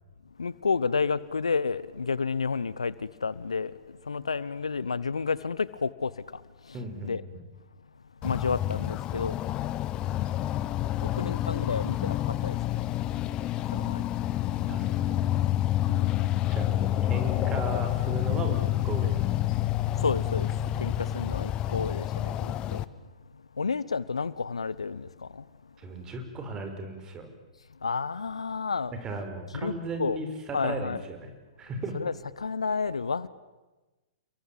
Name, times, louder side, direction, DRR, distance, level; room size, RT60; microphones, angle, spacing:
voice 1, 0.4-7.2 8.2-9.4 11.0-12.8 13.7-14.1 15.9-16.2 19.9-20.5 20.8-22.8 23.6-25.5 27.8-28.9 29.5-29.7 30.0-30.2 30.5-31.0 31.9-33.3, left 5 dB, 80° left, 1.0 m, -31 dB
voice 2, 6.7-7.4 14.7-15.2 16.5-19.2 25.8-27.3 29.0-31.3 31.6-32.0, right 2 dB, 20° right, 5.8 m, -36 dB
sound 1, 8.2-22.8, left 13 dB, 30° left, 1.1 m, -28 dB
29.5 x 22.5 x 8.9 m
figure-of-eight pair, 110°, 3 cm